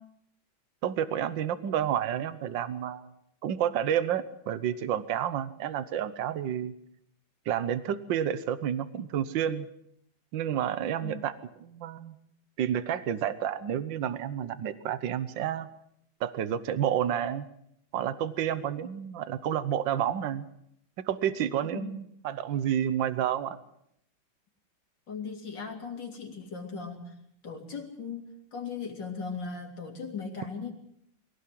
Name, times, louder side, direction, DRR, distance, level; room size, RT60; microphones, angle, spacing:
voice 1, 0.8-3.1 3.4-6.7 7.5-9.7 10.3-12.1 12.6-15.7 16.2-17.5 17.9-20.4 21.0-23.6, right 10 dB, 70° right, 14 dB, 1.7 m, -30 dB
voice 2, 25.1-27.1 27.4-30.7, left 5 dB, 65° left, 3 dB, 3.9 m, -38 dB
22.5 x 17.0 x 7.7 m, 0.72 s
omnidirectional pair, 2.1 m